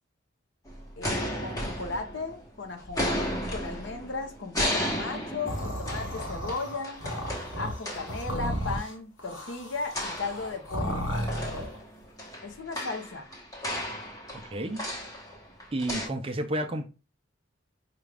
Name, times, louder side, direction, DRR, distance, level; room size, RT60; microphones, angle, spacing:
sound 1, 0.7-2.5 2.8-8.3 9.9-10.9 11.3-16.1, equal, 20° left, 1.0 m, -34 dB
voice 1, 1.0-7.0 7.6-11.1 12.4-13.3, left 3 dB, 70° left, 0.7 m, -36 dB
sound 2, 5.5-11.8, equal, 90° left, 1.3 m, -34 dB
voice 2, 14.5-14.8 15.7-16.9, right 1 dB, 30° right, 0.5 m, -31 dB
5.0 x 2.3 x 3.3 m
head